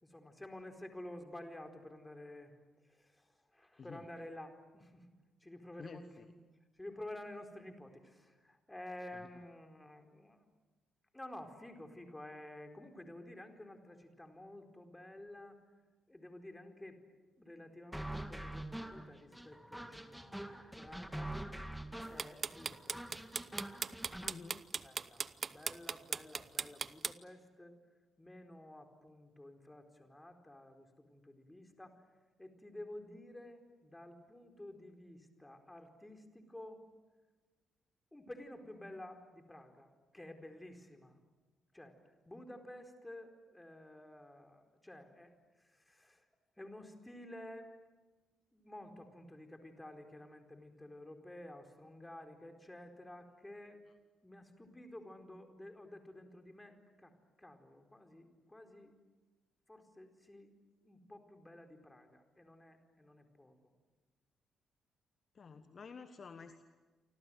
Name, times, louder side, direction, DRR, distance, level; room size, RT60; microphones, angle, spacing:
voice 1, 0.0-5.1 5.4-6.3 6.7-10.4 11.1-15.6 16.1-17.0 17.4-21.4 22.1-23.1 24.8-27.8 28.2-32.0 32.4-36.8 38.1-41.2 41.7-42.0 42.3-46.3 46.6-47.7 48.5-53.9 54.2-59.0 59.7-60.5 60.8-63.7, left 1 dB, 10° left, 5 dB, 4.4 m, -52 dB
voice 2, 3.8-4.1 5.8-6.3 9.1-9.3 24.2-24.6 53.9-54.0 65.3-66.6, left 5 dB, 40° left, 10 dB, 1.3 m, -51 dB
sound 1, 17.9-24.3, right 1 dB, 5° right, 2.1 m, -45 dB
sound 2, 22.0-27.1, right 5 dB, 40° right, 0.8 m, -37 dB
29.0 x 25.0 x 7.8 m, 1.3 s
figure-of-eight pair, 40°, 0 cm